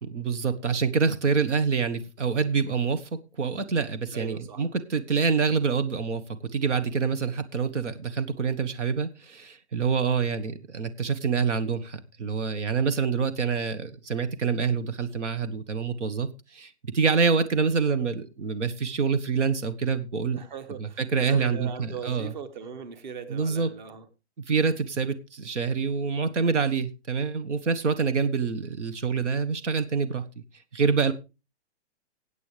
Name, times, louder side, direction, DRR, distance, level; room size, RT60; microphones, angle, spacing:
voice 1, 0.0-3.1 3.4-6.2 6.5-20.4 20.8-22.3 23.3-23.7 24.5-30.2 30.7-31.1, right 5 dB, 90° right, 1.5 m, -26 dB
voice 2, 4.1-4.7 20.3-24.1, right 7 dB, 40° right, 1.5 m, -39 dB
17.0 x 8.4 x 3.4 m
hypercardioid pair, 170°, 35 cm